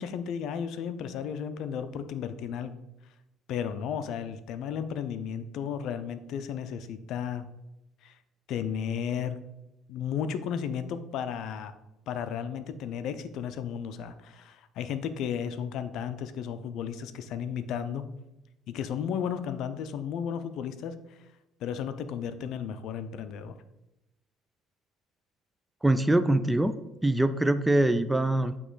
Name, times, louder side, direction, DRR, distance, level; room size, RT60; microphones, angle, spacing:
voice 1, 0.0-2.7 3.5-7.5 8.0-8.2 8.5-9.4 9.9-11.7 12.1-18.0 18.7-21.2 21.6-23.5, left 8 dB, 65° left, 11 dB, 0.5 m, -34 dB
voice 2, 25.8-26.7 27.0-28.5, right 1 dB, 5° right, 11 dB, 0.3 m, -23 dB
8.3 x 3.0 x 3.9 m, 0.94 s
cardioid pair, 110°, 0 cm